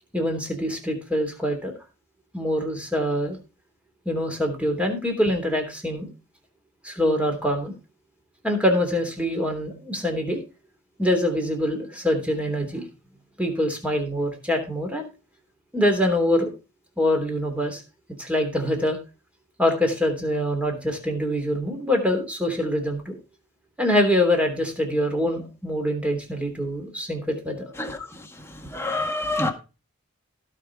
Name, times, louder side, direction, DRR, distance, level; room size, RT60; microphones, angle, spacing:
voice 1, 0.1-1.7 2.3-3.4 4.0-6.1 6.8-7.7 8.4-10.4 11.0-12.8 13.4-15.1 15.7-16.5 17.0-17.8 18.2-19.0 19.6-23.2 23.8-27.7, left 1 dB, 5° right, 3.2 m, -24 dB
voice 2, 27.8-28.2 28.7-29.5, left 2 dB, 10° left, 1.7 m, -27 dB
16.5 x 5.7 x 4.8 m
head